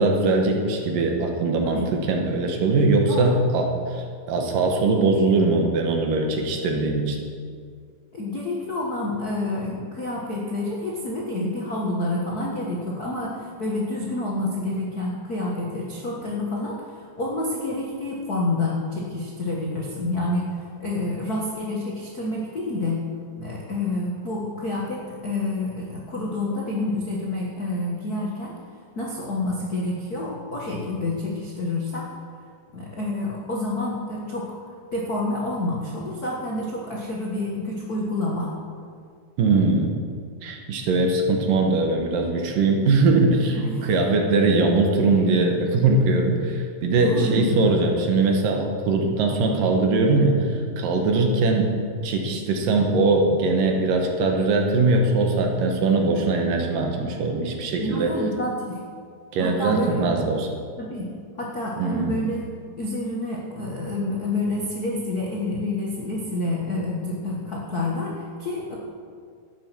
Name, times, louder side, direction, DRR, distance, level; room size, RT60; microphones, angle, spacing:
voice 1, 0.0-7.2 39.4-39.9 40.4-51.7 52.0-58.1 59.3-60.5 61.8-62.2, right 3 dB, 70° right, 2 dB, 2.8 m, -21 dB
voice 2, 3.1-3.4 8.1-23.0 23.4-28.5 28.9-32.0 32.7-34.4 34.9-38.5 43.5-44.0 47.0-47.6 57.8-58.8 59.4-60.2 60.8-61.1 61.4-62.4 62.8-68.8, left 2 dB, 60° left, -3 dB, 0.9 m, -28 dB
12.0 x 8.6 x 6.1 m, 2.1 s
omnidirectional pair, 4.2 m